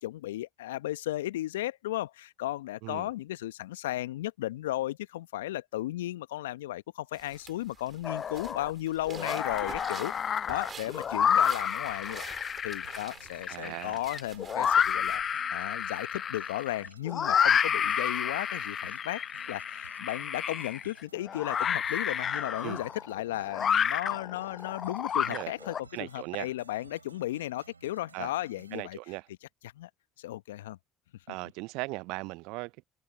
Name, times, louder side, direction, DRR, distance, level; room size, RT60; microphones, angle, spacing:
voice 1, 0.0-15.2 15.5-29.0 29.6-29.9 30.2-30.8, left 15 dB, 75° left, 1.1 m, -35 dB
sound 1, 7.1-15.3, right 6 dB, 35° right, 3.3 m, -48 dB
sound 2, 8.0-8.7 9.1-25.8, left 8 dB, 40° left, 0.7 m, -30 dB
sound 3, 12.8-28.8, right 5 dB, 90° right, 3.5 m, -56 dB
voice 2, 13.5-14.0 22.6-22.8 25.3-25.5 25.9-26.5 28.1-28.3 28.7-29.2 31.3-32.8, right 25 dB, 65° right, 0.6 m, -38 dB
figure-of-eight pair, 60°, 0 cm